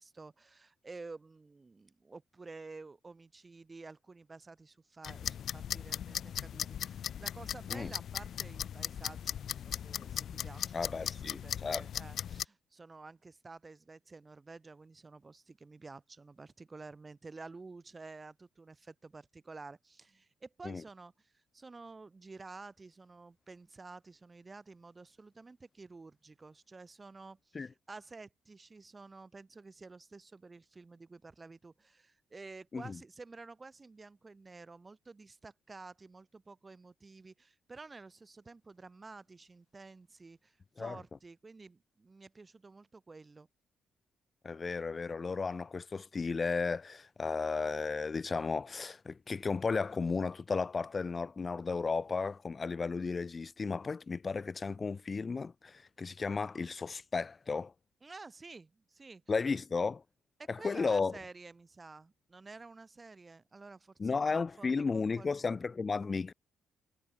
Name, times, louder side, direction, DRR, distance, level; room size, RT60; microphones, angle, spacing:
voice 1, 0.0-43.5 58.0-59.2 60.4-65.6, right 3 dB, 25° right, 3.2 m, -51 dB
sound 1, 5.0-12.4, left 9 dB, 65° left, 1.9 m, -38 dB
voice 2, 10.7-11.8 20.6-20.8 27.5-27.7 32.7-33.0 40.8-41.0 44.4-57.7 59.3-60.0 60.5-61.2 64.0-66.3, left 4 dB, 35° left, 1.4 m, -34 dB
cardioid pair, 90°, 0 cm